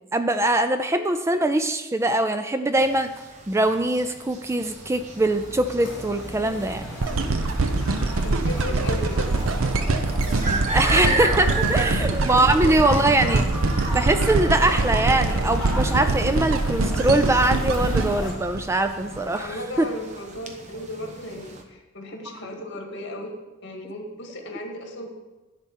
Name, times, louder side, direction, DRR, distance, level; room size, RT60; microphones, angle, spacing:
voice 1, 0.1-3.1 3.5-6.9 10.4-13.5 13.9-19.9, right 2 dB, 15° right, 9 dB, 0.4 m, -22 dB
sound 1, 2.7-21.6, right 2 dB, 35° right, 1.1 m, -36 dB
sound 2, 4.1-18.3, equal, 5° left, 3.5 m, -35 dB
sound 3, 7.0-19.2 19.8-19.9, right 3 dB, 85° right, 0.7 m, -24 dB
voice 2, 8.2-9.4 9.9-10.1 11.9-12.0 19.4-23.3 23.6-25.1, left 1 dB, 60° left, 2 dB, 1.9 m, -36 dB
10.5 x 4.4 x 7.2 m, 1.1 s
head